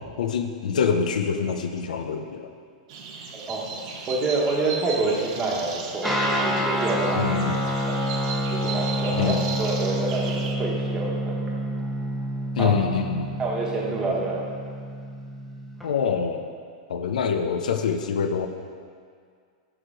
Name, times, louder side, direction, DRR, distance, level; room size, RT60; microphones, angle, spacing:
voice 1, 0.2-2.5 7.2-7.6 9.1-9.4 12.5-13.4 15.8-16.5 16.9-18.5, left 6 dB, 90° left, 6 dB, 0.6 m, -25 dB
sound 1, 2.9-10.6, right 5 dB, 50° right, 0.8 m, -36 dB
voice 2, 3.3-7.2 7.9-8.0 8.5-11.3 12.6-12.7 13.4-14.5, right 3 dB, 20° right, -3 dB, 1.2 m, -27 dB
Guitar, 6.0-15.8, equal, ahead, 0.7 m, -28 dB
6.2 x 4.9 x 4.9 m, 2.1 s
supercardioid pair, 150°, 4 cm